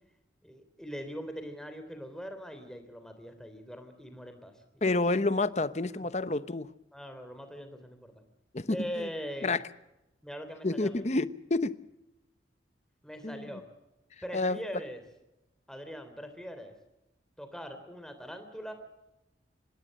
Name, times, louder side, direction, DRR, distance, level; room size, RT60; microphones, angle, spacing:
voice 1, 0.4-4.9 5.9-6.1 6.9-8.2 8.7-9.6 10.2-11.0 13.0-13.6 14.2-15.0 15.7-16.7 17.4-18.7, equal, 5° left, 3.4 m, -41 dB
voice 2, 4.8-6.7 8.5-9.1 9.4-9.6 10.6-11.8 13.2-13.4 14.3-14.6, left 2 dB, 40° left, 0.9 m, -29 dB
25.5 x 20.5 x 6.6 m
head